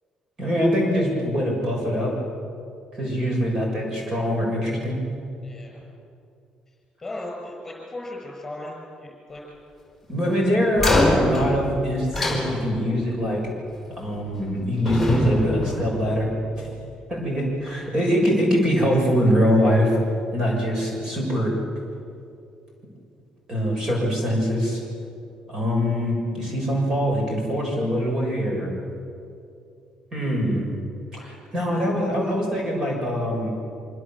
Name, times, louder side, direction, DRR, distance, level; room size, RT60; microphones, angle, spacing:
voice 1, 0.4-2.1 2.9-5.0 10.1-13.4 14.0-16.7 17.1-20.0 20.3-21.6 23.5-24.8 25.5-28.7 30.1-30.6 31.1-33.5, equal, 30° right, -1 dB, 6.7 m, -23 dB
voice 2, 5.4-5.8 7.0-9.4, left 1 dB, 15° left, -1 dB, 6.4 m, -37 dB
sound 1, 10.8-13.1 14.2-14.5 14.9-16.6, left 1 dB, ahead, 4.7 m, -24 dB
26.0 x 25.5 x 7.6 m, 2.5 s
cardioid pair, 175°, 2 cm